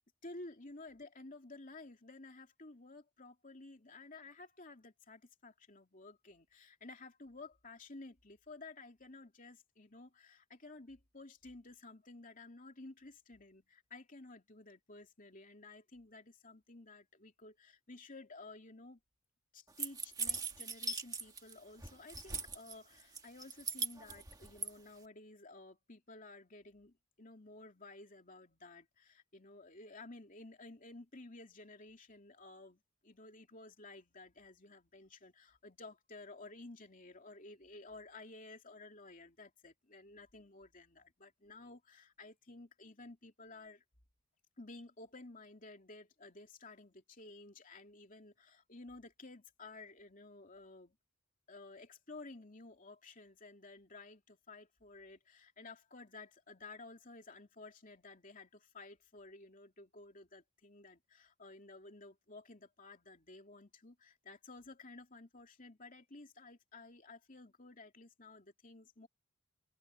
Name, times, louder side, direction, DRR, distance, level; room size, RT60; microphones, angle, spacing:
voice 1, 0.2-19.0 19.5-43.8 44.6-51.0 51.5-69.1, left 2 dB, 40° left, 2.9 m, -54 dB
sound 1, 19.8-21.5 21.8-22.7 23.2-24.7, right 4 dB, 15° right, 1.6 m, -39 dB
head